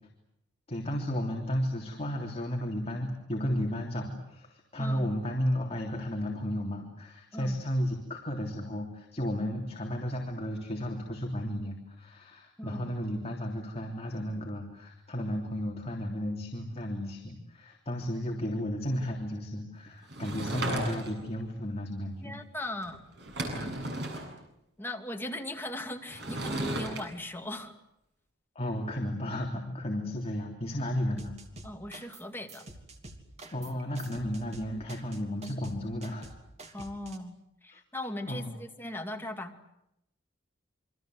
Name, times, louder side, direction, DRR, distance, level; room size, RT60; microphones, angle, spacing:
voice 1, 0.7-22.4 23.5-23.7 28.5-31.4 33.5-36.2 37.7-37.8 38.3-38.5, equal, 35° left, 1 dB, 3.4 m, -33 dB
voice 2, 4.8-5.2 7.3-7.6 12.6-12.9 22.2-23.0 23.5-23.7 24.8-27.7 31.6-32.7 36.7-37.4 37.6-39.5, left 1 dB, 10° left, 4 dB, 2.5 m, -38 dB
Sliding door / Wood, 20.1-21.3 22.8-22.9 23.2-24.3 26.1-27.0, right 1 dB, 60° right, 7.7 m, -34 dB
sound 1, 31.2-32.2 32.5-37.2, right 2 dB, 35° right, 3.1 m, -47 dB
28.0 x 25.0 x 8.0 m, 0.83 s
head